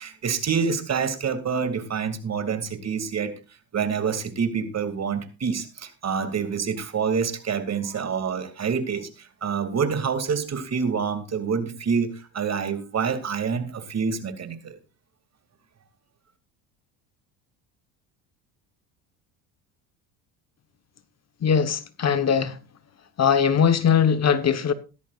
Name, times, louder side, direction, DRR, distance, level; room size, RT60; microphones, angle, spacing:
voice 1, 0.0-3.3 3.7-14.8, right 6 dB, 35° right, 2.6 m, -27 dB
voice 2, 21.4-22.6 23.2-24.7, left 7 dB, 35° left, 1.2 m, -20 dB
16.5 x 13.0 x 2.5 m
supercardioid pair, 80°, 43 cm